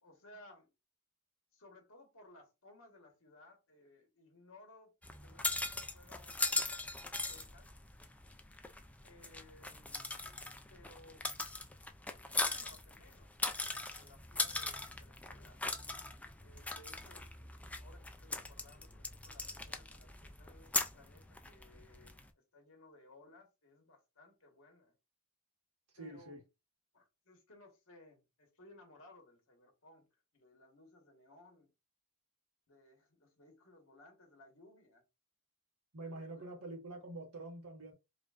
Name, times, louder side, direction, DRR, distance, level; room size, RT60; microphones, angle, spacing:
voice 1, 0.0-0.7 1.5-4.9 5.2-7.7 9.0-10.1 10.7-11.3 12.1-15.6 16.4-17.3 17.7-22.1 22.5-24.9 26.0-26.4 26.9-30.1 30.3-31.7 32.7-35.0 36.0-36.5, left 2 dB, 60° left, 1.5 m, -61 dB
sound 1, 5.0-22.3, left 2 dB, 5° left, 0.4 m, -40 dB
voice 2, 25.9-26.4 35.9-37.9, right 2 dB, 85° right, 1.4 m, -46 dB
4.9 x 2.6 x 2.5 m
head